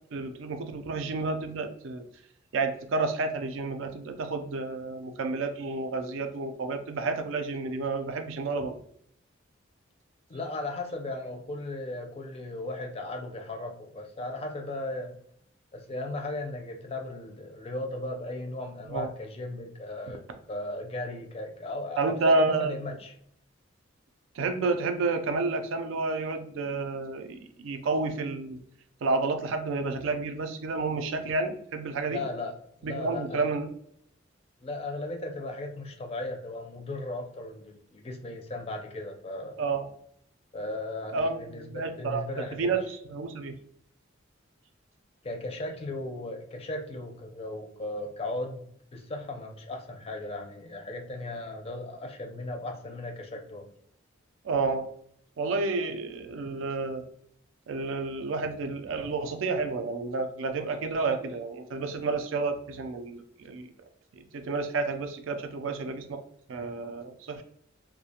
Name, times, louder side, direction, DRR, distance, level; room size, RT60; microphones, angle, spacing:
voice 1, 0.1-2.0 2.5-8.8 18.9-19.1 22.0-22.7 24.4-28.6 29.0-32.2 32.8-33.7 39.6-39.9 41.1-42.2 42.6-43.5 54.4-54.9 55.4-57.0 57.7-63.7 64.1-66.2 66.5-67.4, right 3 dB, 70° right, 7 dB, 0.4 m, -30 dB
voice 2, 10.3-15.1 15.7-20.2 20.5-23.1 32.1-32.5 32.8-33.5 34.6-39.6 40.5-42.8 45.2-48.6 48.9-53.7, left 2 dB, 30° left, 3 dB, 0.4 m, -36 dB
2.3 x 2.1 x 2.7 m, 0.68 s
head